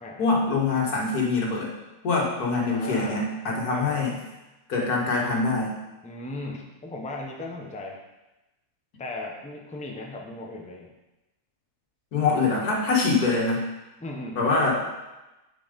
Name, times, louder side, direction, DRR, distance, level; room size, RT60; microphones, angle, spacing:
voice 1, 0.2-1.7 2.0-4.2 4.7-5.8 12.1-13.6 14.4-14.9, left 3 dB, 80° left, -2 dB, 2.1 m, -24 dB
voice 2, 2.6-3.2 3.7-4.1 6.0-8.0 9.0-10.9 12.3-12.4 14.0-14.5, left 2 dB, 5° left, 0 dB, 0.7 m, -37 dB
9.3 x 4.7 x 5.2 m, 1.0 s
omnidirectional pair, 1.6 m